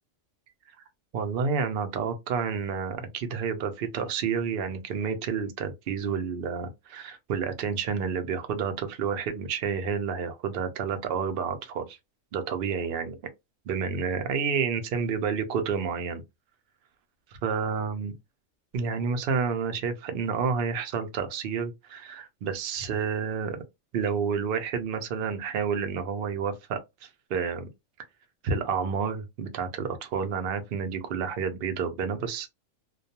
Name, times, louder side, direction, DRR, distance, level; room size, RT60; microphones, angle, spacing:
voice 1, 1.1-12.0 12.3-13.2 13.7-16.2 17.3-18.1 18.7-23.6 23.9-27.7 28.4-32.5, right 6 dB, 60° right, 0.6 m, -30 dB
2.3 x 2.2 x 2.7 m
omnidirectional pair, 1.4 m